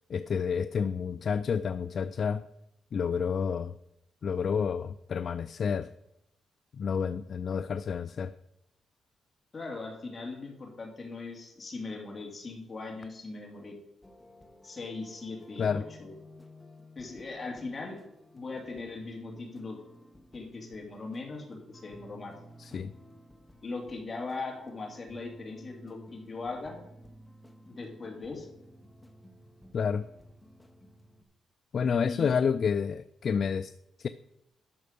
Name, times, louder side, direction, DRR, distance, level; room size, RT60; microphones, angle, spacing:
voice 1, 0.1-2.4 2.9-3.7 4.2-5.9 6.7-8.3 15.6-15.8 22.6-22.9 29.7-30.0 31.7-33.7 34.0-34.1, left 6 dB, 45° left, 13 dB, 0.3 m, -29 dB
voice 2, 9.5-13.8 14.6-16.1 17.0-18.0 18.3-19.8 20.3-22.3 23.6-26.8 27.7-28.5 32.0-32.3, left 3 dB, 25° left, 0 dB, 2.5 m, -39 dB
sound 1, 14.0-31.2, equal, 10° left, 0.9 m, -54 dB
11.0 x 6.3 x 5.2 m, 0.84 s
cardioid pair, 140°, 0 cm